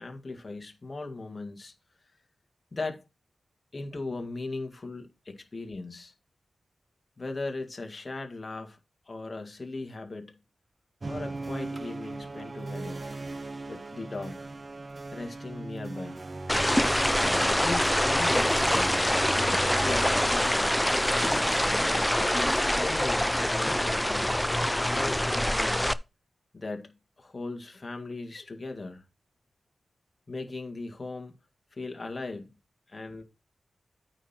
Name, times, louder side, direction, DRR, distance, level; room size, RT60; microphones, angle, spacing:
voice 1, 0.0-1.7 2.7-3.0 3.7-6.1 7.2-8.8 9.1-10.4 11.1-13.0 13.7-14.5 15.1-16.2 17.6-18.7 19.4-20.8 21.3-21.6 22.2-24.3 24.8-25.9 26.5-29.0 30.3-31.3 31.8-32.5 32.9-33.2, left 3 dB, 35° left, 2.0 m, -38 dB
sound 1, 11.0-22.0, right 2 dB, 40° right, 0.6 m, -38 dB
sound 2, 16.5-25.9, left 1 dB, 5° left, 0.5 m, -25 dB
9.0 x 4.5 x 5.9 m
wide cardioid pair, 80°, 0 cm